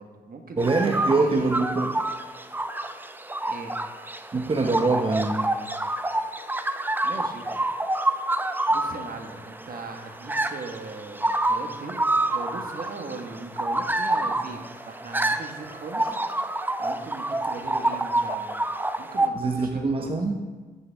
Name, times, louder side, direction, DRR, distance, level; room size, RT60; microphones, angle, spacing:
voice 1, 0.0-1.5 3.5-3.7 7.0-7.5 8.7-16.2 16.8-18.6 19.0-20.2, right 3 dB, 50° right, 4 dB, 1.5 m, -39 dB
sound 1, 0.6-19.3, right 1 dB, 10° right, 0.6 m, -28 dB
voice 2, 0.6-1.9 4.3-5.4 19.3-20.4, right 3 dB, 30° right, 3 dB, 1.0 m, -24 dB
9.6 x 8.2 x 3.5 m, 1.3 s
hypercardioid pair, 50°, 20 cm